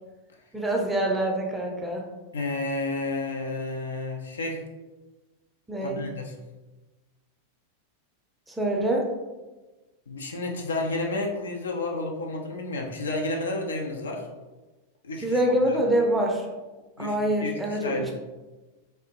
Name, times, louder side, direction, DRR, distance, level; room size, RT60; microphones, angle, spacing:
voice 1, 0.5-2.0 5.7-6.0 8.5-9.1 15.2-16.5 17.0-18.1, right 1 dB, 5° right, -1 dB, 0.5 m, -25 dB
voice 2, 2.3-4.6 5.8-6.4 10.1-14.3 15.0-15.4 17.0-18.1, left 2 dB, 70° left, 1 dB, 0.4 m, -31 dB
3.3 x 2.5 x 2.8 m, 1.2 s
figure-of-eight pair, 90°, 0 cm